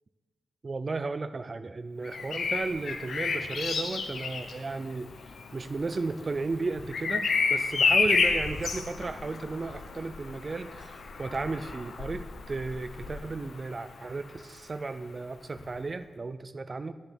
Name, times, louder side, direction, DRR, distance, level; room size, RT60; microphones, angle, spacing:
voice 1, 0.6-5.1 5.5-16.9, right 3 dB, 30° right, 11 dB, 0.4 m, -34 dB
Bird vocalization bird call bird song, 2.0-13.8 15.6-15.8, left 4 dB, 65° left, 1.0 m, -30 dB
10.5 x 6.9 x 7.0 m, 1.3 s
wide cardioid pair, 150°, 0 cm